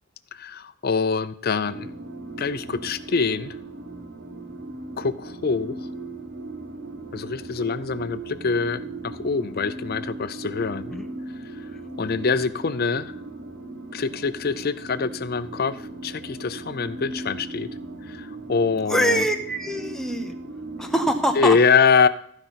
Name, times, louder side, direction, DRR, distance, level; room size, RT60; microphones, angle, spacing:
voice 1, 0.3-2.0 2.4-3.6 5.0-5.9 7.1-11.0 11.5-11.7 12.0-13.1 13.9-17.7 18.1-19.2 21.4-22.1, left 5 dB, 50° left, 13 dB, 0.6 m, -24 dB
sound 1, 1.7-21.4, right 2 dB, 55° right, 1.6 m, -38 dB
voice 2, 18.9-20.3 20.8-21.6, equal, ahead, 5 dB, 1.1 m, -24 dB
14.0 x 5.4 x 5.8 m, 0.66 s
head